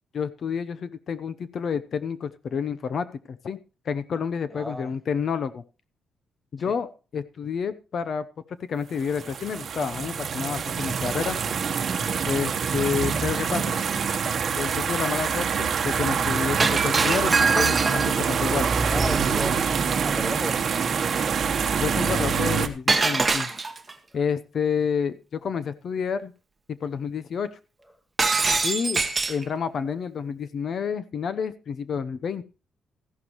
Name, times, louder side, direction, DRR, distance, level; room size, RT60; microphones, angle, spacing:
voice 1, 0.1-3.6 3.9-5.6 6.5-8.2 8.7-11.4 12.2-13.7 14.5-18.7 21.8-23.5 24.1-26.3 26.7-27.6 28.6-29.0 29.3-32.4, left 6 dB, 40° left, 0.7 m, -29 dB
voice 2, 4.5-4.9 6.6-6.8 18.8-19.7 20.0-21.2 24.1-24.2, equal, 5° left, 0.7 m, -35 dB
sound 1, 9.0-22.7, right 6 dB, 40° right, 1.1 m, -25 dB
Shatter, 16.6-18.3 22.9-23.9 28.2-29.4, right 4 dB, 15° right, 1.1 m, -23 dB
14.5 x 11.5 x 3.0 m
cardioid pair, 175°, 0 cm